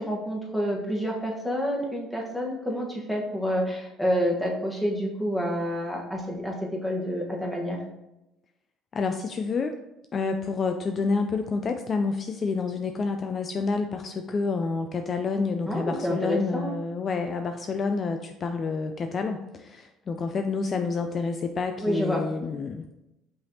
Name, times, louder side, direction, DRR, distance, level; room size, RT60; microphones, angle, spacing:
voice 1, 0.0-6.5 6.8-7.8 15.6-16.7 21.8-22.2, equal, 5° left, -2 dB, 1.2 m, -28 dB
voice 2, 8.9-9.8 10.1-22.8, left 4 dB, 40° left, 6 dB, 0.3 m, -28 dB
5.3 x 3.4 x 2.8 m, 0.93 s
hypercardioid pair, 70°, 0 cm